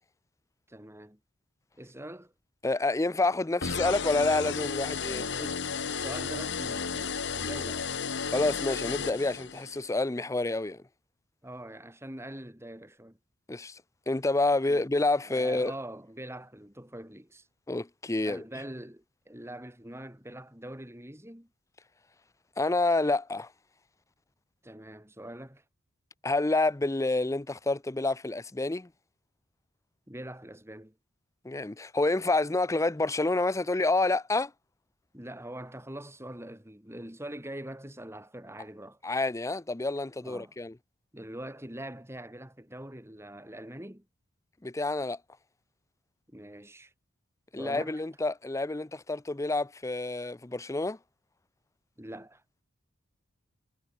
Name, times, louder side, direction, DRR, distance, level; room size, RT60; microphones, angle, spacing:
voice 1, 0.7-1.2 1.8-2.3 5.3-7.9 11.4-13.2 14.7-14.9 15.2-17.5 18.2-21.5 24.6-25.6 30.1-31.0 35.1-39.0 40.2-40.5 41.1-44.1 46.3-46.9 47.6-48.0 52.0-52.4, right 1 dB, 15° right, 6.3 m, -43 dB
voice 2, 2.6-5.3 8.3-10.8 13.5-13.8 14.1-15.7 17.7-18.4 22.6-23.5 26.2-28.9 31.4-34.5 39.0-40.7 44.6-45.2 47.5-51.0, left 2 dB, 15° left, 0.5 m, -28 dB
sound 1, 3.6-9.8, left 5 dB, 60° left, 1.4 m, -33 dB
head